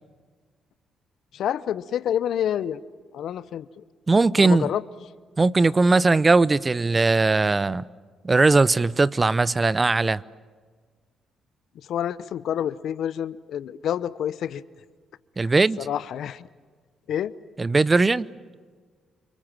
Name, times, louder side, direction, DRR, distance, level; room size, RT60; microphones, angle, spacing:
voice 1, 1.3-2.8 3.1-3.8 4.4-4.8 11.9-14.6 15.4-16.5 17.1-17.3, left 10 dB, 65° left, 0.7 m, -28 dB
voice 2, 4.1-4.7 5.4-7.8 8.2-10.2 15.4-15.8 17.6-18.3, right 3 dB, 30° right, 0.7 m, -19 dB
28.5 x 25.0 x 7.5 m
hypercardioid pair, 50°, 0 cm